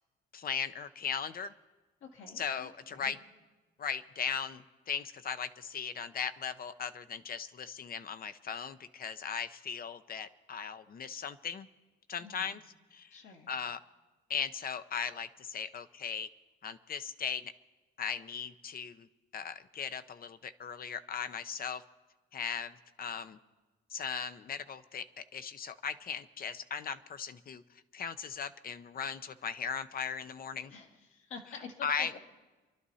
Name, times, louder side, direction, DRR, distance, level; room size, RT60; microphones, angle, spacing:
voice 1, 0.3-1.5 2.4-3.2 3.8-11.7 12.1-12.6 12.9-13.2 13.5-13.8 14.3-16.3 16.6-17.5 18.0-19.1 19.3-21.8 22.3-23.4 23.9-27.6 27.9-30.7 31.8-32.2, left 7 dB, 50° left, 12 dB, 0.8 m, -38 dB
voice 2, 2.0-3.2 12.2-12.6 13.1-13.5 30.7-32.2, left 5 dB, 75° left, 1 dB, 2.4 m, -49 dB
27.0 x 11.5 x 4.2 m, 1.2 s
cardioid pair, 90°, 20 cm